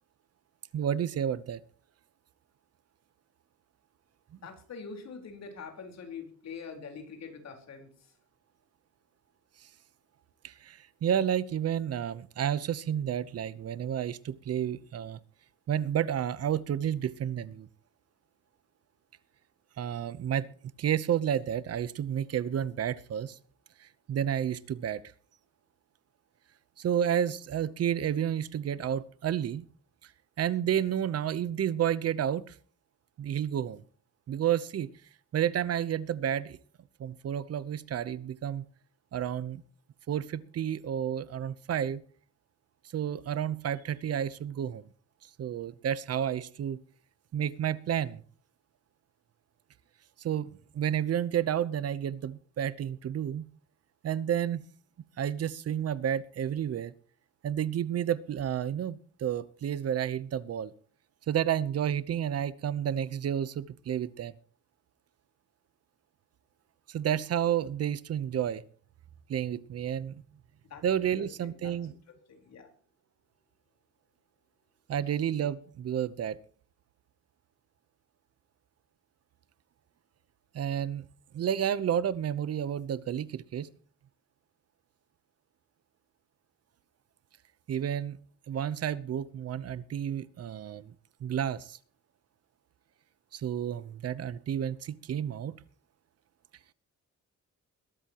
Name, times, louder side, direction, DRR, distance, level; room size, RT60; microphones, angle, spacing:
voice 1, 0.7-1.6 10.4-15.2 15.7-17.7 19.8-20.5 20.8-23.4 23.8-25.0 26.8-29.6 30.0-30.1 30.4-32.6 33.2-33.8 34.3-34.9 35.3-36.6 37.0-38.6 39.1-39.6 40.1-42.0 42.9-44.8 45.2-46.8 47.3-48.2 50.2-53.5 54.0-54.6 55.2-56.9 57.4-60.7 61.3-64.3 66.9-68.6 69.3-70.2 70.8-71.9 74.9-76.4 80.5-81.0 81.3-83.7 87.7-88.2 88.5-90.9 91.2-91.8 93.3-95.6, right 9 dB, 55° right, 17 dB, 0.9 m, -31 dB
voice 2, 4.4-7.9 70.7-70.8 71.1-71.7 72.3-72.7, left 5 dB, 60° left, 5 dB, 4.4 m, -44 dB
21.0 x 13.0 x 3.0 m, 0.42 s
cardioid pair, 145°, 30 cm